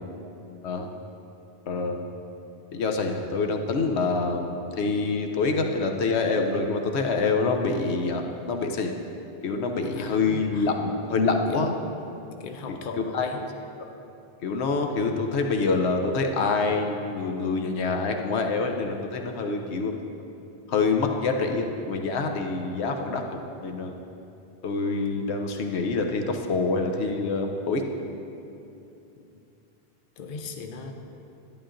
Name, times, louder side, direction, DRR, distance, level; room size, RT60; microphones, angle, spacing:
voice 1, 1.7-2.0 2.7-9.0 9.4-11.7 12.7-13.5 14.4-19.9 20.7-23.9 24.6-27.8, left 4 dB, 85° left, 3 dB, 1.0 m, -26 dB
voice 2, 9.8-10.7 11.5-11.7 12.4-13.4 25.1-25.3 29.2-29.3 30.2-30.9, left 4 dB, 60° left, 5 dB, 0.8 m, -38 dB
11.0 x 10.5 x 2.6 m, 2.8 s
omnidirectional pair, 1.1 m